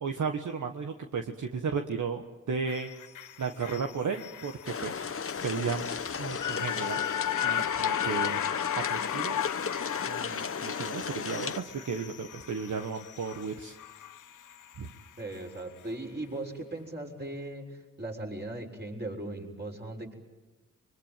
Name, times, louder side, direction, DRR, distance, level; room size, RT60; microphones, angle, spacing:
voice 1, 0.0-2.9 3.4-5.0 5.4-5.9 6.2-7.0 7.4-8.4 8.8-9.4 10.0-13.7 14.8-14.9, right 5 dB, 65° right, 5 dB, 1.6 m, -34 dB
sound 1, 2.7-15.0 15.4-15.5, left 10 dB, 65° left, 0.8 m, -36 dB
sound 2, 4.7-11.6, left 6 dB, 40° left, 1.1 m, -35 dB
voice 2, 15.2-20.1, right 2 dB, 30° right, 0 dB, 6.7 m, -38 dB
24.5 x 23.0 x 9.2 m, 1.2 s
supercardioid pair, 45°, 33 cm